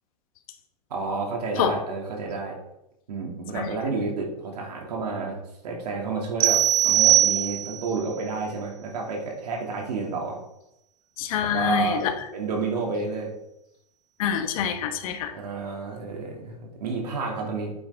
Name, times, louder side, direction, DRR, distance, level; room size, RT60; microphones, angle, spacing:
voice 1, 0.9-2.6 3.1-10.4 11.4-12.0 12.3-13.3 15.3-17.7, right 4 dB, 80° right, 0 dB, 2.7 m, -30 dB
sound 1, 6.4-7.9, right 12 dB, 55° right, 0.6 m, -20 dB
voice 2, 11.2-12.1 14.2-15.3, left 8 dB, 60° left, 6 dB, 1.3 m, -26 dB
8.1 x 8.0 x 3.7 m, 0.85 s
hypercardioid pair, 135°, 20 cm